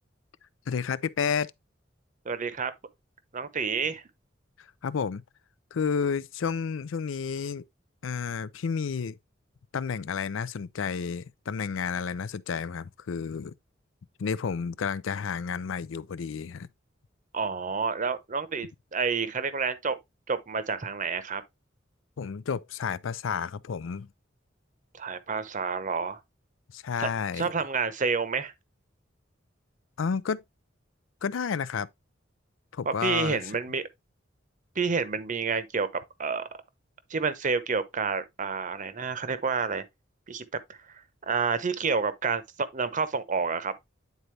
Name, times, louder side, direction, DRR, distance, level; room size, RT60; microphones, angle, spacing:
voice 1, 0.7-1.5 4.8-5.2 5.7-7.6 8.0-9.2 9.7-13.5 14.2-16.7 22.2-24.1 26.7-27.5 30.0-30.4 31.2-31.9 32.7-33.4, left 6 dB, 85° left, 0.4 m, -31 dB
voice 2, 2.2-2.7 3.3-4.0 17.3-20.0 20.3-21.4 24.9-26.2 27.0-27.1 27.4-28.5 32.8-33.8 34.8-35.9 36.2-36.6 37.1-39.8 40.3-40.4 40.9-43.7, right 5 dB, 40° right, 0.8 m, -29 dB
9.3 x 4.0 x 3.2 m
head